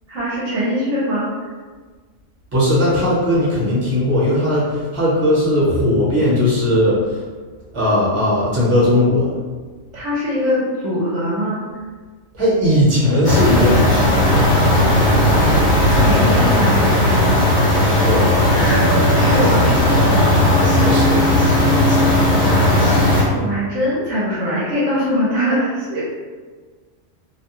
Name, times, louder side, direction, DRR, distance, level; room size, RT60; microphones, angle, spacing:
voice 1, 0.1-1.3 9.9-11.6 15.9-17.3 18.6-20.3 23.3-26.0, equal, 70° right, -7 dB, 1.0 m, -22 dB
voice 2, 2.5-7.2 7.7-9.3 12.4-14.0 18.0-18.3 20.8-21.2, left 1 dB, 25° right, -8 dB, 0.9 m, -17 dB
sound 1, 13.2-23.2, left 1 dB, 45° left, 1.0 m, -15 dB
2.6 x 2.2 x 2.9 m, 1.4 s
omnidirectional pair, 1.4 m